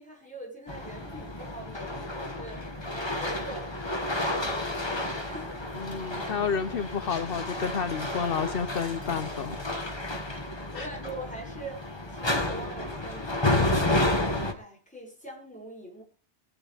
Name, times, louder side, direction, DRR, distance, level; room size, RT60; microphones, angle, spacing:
voice 1, 0.0-5.0 5.3-5.6 5.9-6.0 10.7-13.9 14.6-16.0, right 1 dB, 5° left, -2 dB, 6.9 m, -43 dB
sound 1, 0.7-14.5, left 1 dB, 20° left, 2.0 m, -31 dB
voice 2, 5.7-9.6 10.7-10.9, left 6 dB, 55° left, 10 dB, 1.0 m, -30 dB
23.0 x 10.0 x 3.5 m, 0.35 s
omnidirectional pair, 1.2 m